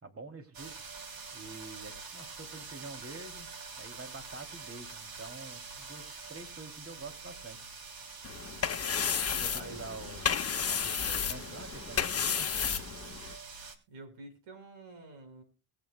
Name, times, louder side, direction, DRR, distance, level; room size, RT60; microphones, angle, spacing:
voice 1, 0.0-0.9 1.3-3.5 3.8-7.6 9.2-12.5, right 3 dB, 30° right, 5 dB, 3.0 m, -47 dB
sound 1, 0.5-13.8, right 4 dB, 45° right, 3.1 m, -46 dB
sound 2, 8.2-13.4, left 7 dB, 30° left, 1.5 m, -32 dB
voice 2, 9.5-9.8 13.9-15.4, right 2 dB, 70° right, 6 dB, 5.8 m, -48 dB
21.5 x 7.7 x 2.3 m, 0.34 s
supercardioid pair, 80°, 48 cm